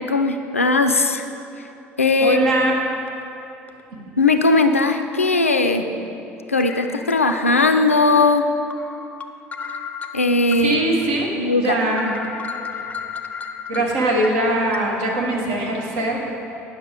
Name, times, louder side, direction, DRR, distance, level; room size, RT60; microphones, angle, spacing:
voice 1, 0.1-1.2 2.0-2.5 4.2-5.9 6.5-8.5 10.1-10.8 11.4-11.8, left 3 dB, 85° left, 7 dB, 0.4 m, -18 dB
voice 2, 2.2-2.7 3.9-4.0 10.6-12.1 13.7-16.2, right 1 dB, 60° right, -1 dB, 1.4 m, -21 dB
sound 1, 3.1-3.2 3.7-3.8 5.0-5.1 6.6-7.6 8.1-8.2 8.7-10.6 11.0-11.1 11.5-11.6 11.9-14.8, left 6 dB, 20° left, 0.5 m, -34 dB
9.4 x 6.1 x 5.0 m, 2.9 s
figure-of-eight pair, 60°, 7 cm